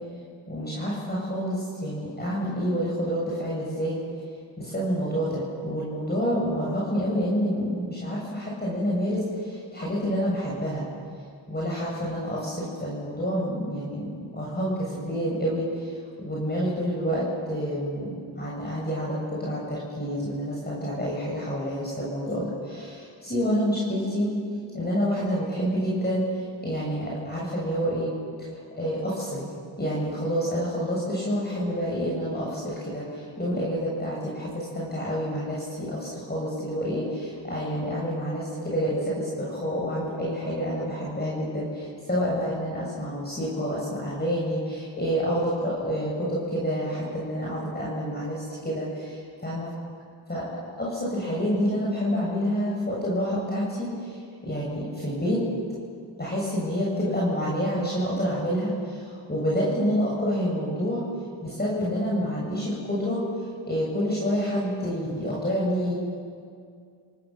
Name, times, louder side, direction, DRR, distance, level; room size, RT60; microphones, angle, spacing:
voice 1, 0.5-4.3 4.6-10.8 11.5-24.3 24.7-26.2 26.6-28.1 28.4-28.5 28.8-29.4 29.8-49.7 50.3-50.5 50.8-55.4 56.2-61.0 61.4-66.0, equal, 20° left, -6 dB, 7.7 m, -28 dB
29.5 x 17.5 x 7.4 m, 2.2 s
cardioid pair, 60°, 50 cm